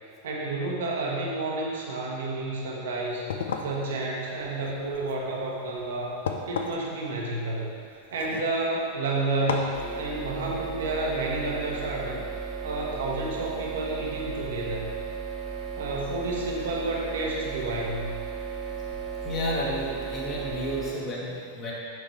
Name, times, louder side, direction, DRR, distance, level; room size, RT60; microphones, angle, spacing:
voice 1, 0.2-12.2 12.6-14.9 15.8-18.2, right 2 dB, 60° right, -2 dB, 1.1 m, -30 dB
sound 1, 3.0-9.0 9.5-9.8, left 5 dB, 60° left, 0.5 m, -36 dB
sound 2, 9.7-20.9, right 6 dB, 30° right, 1.0 m, -35 dB
voice 2, 19.2-21.7, equal, 30° left, -6 dB, 1.7 m, -31 dB
6.6 x 6.3 x 3.2 m, 2.3 s
figure-of-eight pair, 90°, 0 cm